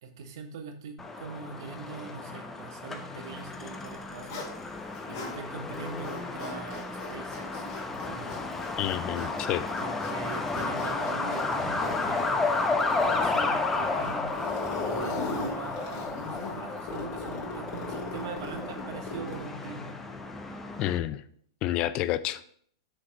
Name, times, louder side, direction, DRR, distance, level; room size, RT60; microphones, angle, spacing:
voice 1, 0.0-4.5 5.1-8.4 9.8-14.4 14.8-20.0, right 5 dB, 65° right, 6 dB, 1.3 m, -42 dB
Truck, 1.0-21.0, left 3 dB, 10° left, 0.9 m, -32 dB
Zipper (clothing), 3.7-5.4 5.7-19.5, left 3 dB, 55° left, 2.8 m, -39 dB
voice 2, 8.8-9.7 20.8-21.2 21.6-22.4, left 13 dB, 40° left, 14 dB, 0.5 m, -29 dB
6.6 x 4.8 x 5.9 m, 0.63 s
hypercardioid pair, 115°, 2 cm